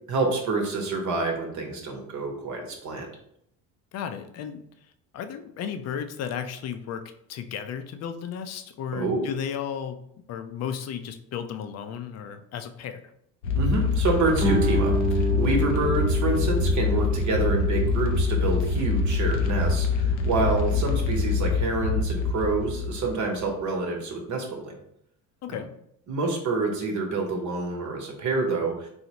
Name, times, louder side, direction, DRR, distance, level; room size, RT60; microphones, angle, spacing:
voice 1, 0.1-3.1 8.9-9.2 13.5-24.7 26.1-28.9, right 3 dB, 50° right, 2 dB, 0.9 m, -27 dB
voice 2, 3.9-4.6 5.1-7.0 7.3-10.0 10.3-13.0 25.4-25.7, left 8 dB, 45° left, 8 dB, 0.4 m, -34 dB
sound 1, 13.4-23.5, left 4 dB, 90° left, 0.6 m, -25 dB
Guitar, 14.4-19.8, right 2 dB, 10° right, 1.0 m, -31 dB
4.0 x 2.0 x 2.9 m, 0.74 s
supercardioid pair, 80°, 38 cm